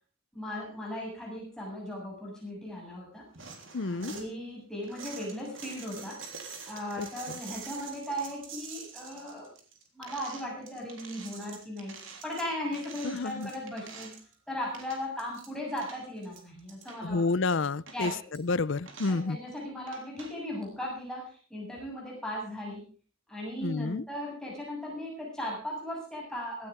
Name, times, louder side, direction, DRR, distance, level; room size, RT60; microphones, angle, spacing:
voice 1, 0.3-3.5 3.8-6.2 6.7-9.5 9.9-14.1 14.5-17.2 17.9-18.2 19.1-22.8 23.3-26.7, left 1 dB, 5° left, -3 dB, 7.0 m, -37 dB
sound 1, 3.3-4.3 4.8-14.3 14.6-15.5 15.8-17.0 17.5-17.6 17.9-18.4 18.9-19.2 19.9-20.4, right 5 dB, 65° right, 3.5 m, -46 dB
voice 2, 3.7-4.1 7.0-7.1 13.0-13.5 17.0-18.1 18.4-19.4 23.6-24.0, left 3 dB, 60° left, 19 dB, 0.6 m, -29 dB
17.0 x 15.5 x 3.6 m, 0.37 s
head